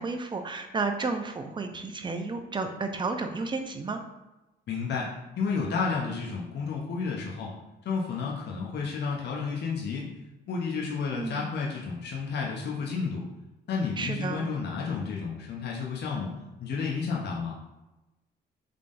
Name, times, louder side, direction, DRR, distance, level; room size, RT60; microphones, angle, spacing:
voice 1, 0.0-4.0 11.2-11.5 14.0-14.5, right 3 dB, 25° right, 6 dB, 0.4 m, -32 dB
voice 2, 4.7-7.5 7.8-10.1 10.5-13.2 13.7-16.3 16.6-17.6, left 5 dB, 60° left, -2 dB, 0.7 m, -31 dB
3.6 x 3.4 x 2.5 m, 1.0 s
cardioid pair, 90°, 20 cm